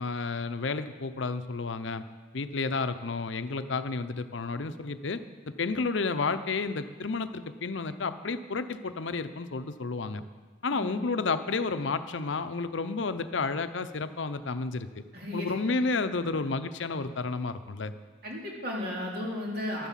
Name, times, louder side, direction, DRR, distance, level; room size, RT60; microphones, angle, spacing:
voice 1, 0.0-2.0 2.3-10.2 10.6-14.9 15.3-17.9, left 4 dB, 70° left, 11 dB, 0.7 m, -31 dB
voice 2, 10.7-11.2 15.1-15.7 18.2-19.9, left 1 dB, 50° right, -2 dB, 3.0 m, -35 dB
12.0 x 11.0 x 7.4 m, 1.4 s
head